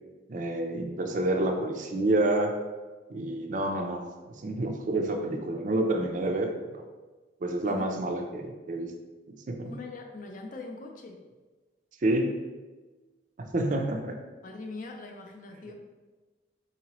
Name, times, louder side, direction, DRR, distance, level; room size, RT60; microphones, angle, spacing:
voice 1, 0.3-2.6 3.1-4.0 4.4-6.8 7.4-8.9 9.3-9.7 12.0-12.3 13.4-14.1, right 1 dB, 45° right, 4 dB, 0.4 m, -28 dB
voice 2, 9.6-11.2 14.4-15.7, left 3 dB, 45° left, 3 dB, 0.5 m, -41 dB
3.9 x 2.8 x 2.9 m, 1.3 s
head